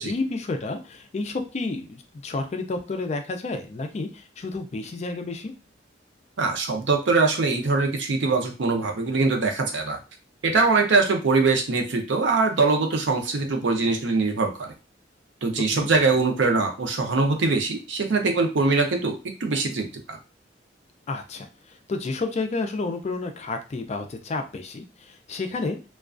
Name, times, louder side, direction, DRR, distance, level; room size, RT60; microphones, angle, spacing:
voice 1, 0.0-5.5 15.7-15.9 21.1-21.5 21.9-25.8, left 3 dB, 40° left, 5 dB, 0.4 m, -30 dB
voice 2, 6.4-10.0 10.4-14.7 15.4-20.2, right 3 dB, 80° right, 4 dB, 0.5 m, -22 dB
2.3 x 2.2 x 2.4 m, 0.31 s
head